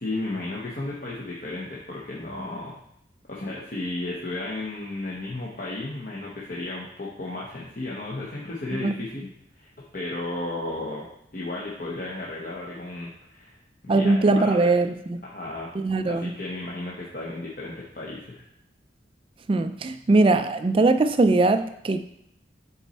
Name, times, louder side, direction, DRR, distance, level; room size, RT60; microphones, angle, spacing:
voice 1, 0.0-2.8 3.3-9.3 9.5-9.7 9.9-11.1 11.3-13.6 13.8-14.7 15.2-15.7 16.0-18.4, left 2 dB, 50° left, -5 dB, 0.9 m, -34 dB
voice 2, 13.9-15.2 15.8-16.3 19.5-22.0, right 3 dB, 30° right, 9 dB, 0.3 m, -21 dB
6.7 x 4.2 x 4.2 m, 0.74 s
head